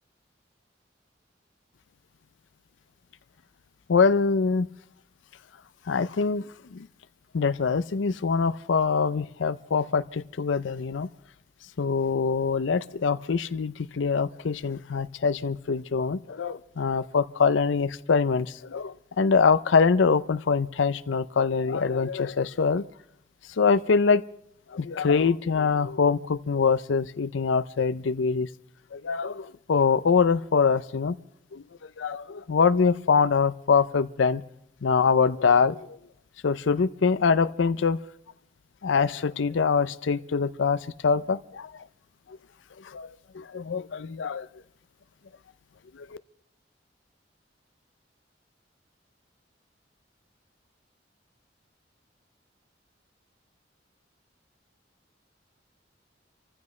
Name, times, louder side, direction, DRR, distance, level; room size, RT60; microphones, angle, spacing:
voice 1, 3.9-4.7 5.9-6.4 6.7-6.9 7.3-11.1 11.8-22.8 23.6-24.2 24.7-28.5 28.9-31.2 31.5-31.6 32.0-34.4 34.8-36.0 36.4-38.0 38.8-41.9 42.8-43.1 43.3-44.5 45.9-46.2, left 5 dB, 90° left, 13 dB, 0.5 m, -24 dB
29.0 x 15.0 x 3.2 m, 0.74 s
head